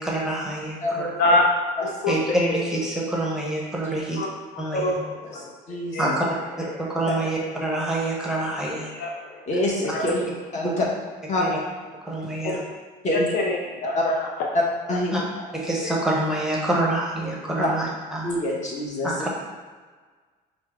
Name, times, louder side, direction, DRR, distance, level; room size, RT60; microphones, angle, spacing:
voice 1, 0.0-1.1 2.1-4.2 4.6-5.0 6.0-6.3 6.8-8.9 10.6-10.7 11.4-11.5 12.1-12.6 15.1-15.2 15.5-18.3 19.0-19.3, right 1 dB, 5° right, -3 dB, 0.7 m, -26 dB
voice 2, 1.8-2.1 2.5-2.6 4.2-4.3 4.7-6.1 6.8-6.9 7.7-7.8 8.9-9.4 9.9-10.0 13.1-14.3 14.9-15.0 15.8-15.9, left 2 dB, 70° left, 0 dB, 0.5 m, -26 dB
voice 3, 5.7-6.1 9.5-10.2 10.5-10.8 11.3-11.4 12.4-12.6 13.0-13.3 13.9-14.0 14.9-15.1 17.6-17.7 18.2-19.1, left 1 dB, 45° left, -3 dB, 1.0 m, -25 dB
4.4 x 2.1 x 3.5 m, 1.4 s
cardioid pair, 110°, 17 cm